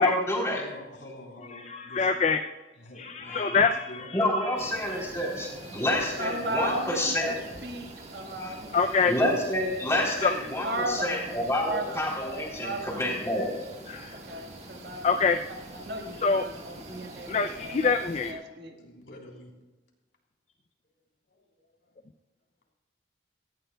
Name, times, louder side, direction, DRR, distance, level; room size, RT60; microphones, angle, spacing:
voice 1, 0.0-0.6 3.2-3.5 4.1-7.4 8.4-8.5 9.1-13.6, left 1 dB, 15° left, -2 dB, 3.4 m, -28 dB
voice 2, 0.5-2.1 2.8-4.1 18.8-19.5, left 1 dB, 70° left, -1 dB, 3.5 m, -46 dB
voice 3, 1.5-2.5 3.0-4.2 4.8-5.1 8.7-9.1 10.2-10.3 13.9-14.2 15.0-15.4 16.2-16.5 17.3-18.4, left 5 dB, 35° left, 7 dB, 0.4 m, -25 dB
sound 1, 4.6-18.3, right 2 dB, 35° right, 1.5 m, -45 dB
voice 4, 6.2-7.3 7.6-8.7 10.6-11.3 11.6-12.0 12.6-13.0 14.1-15.0 15.5-17.9 18.3-18.8, right 1 dB, 55° right, 2 dB, 1.6 m, -35 dB
18.0 x 15.5 x 2.3 m, 1.2 s
head